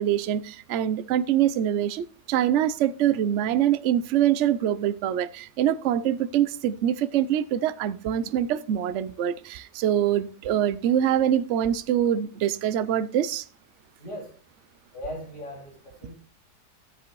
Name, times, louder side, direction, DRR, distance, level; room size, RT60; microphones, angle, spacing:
voice 1, 0.0-13.5, right 10 dB, 65° right, 0.7 m, -24 dB
voice 2, 14.0-14.4 14.9-16.1, left 1 dB, 70° left, 3.7 m, -38 dB
14.0 x 7.9 x 3.1 m
omnidirectional pair, 1.8 m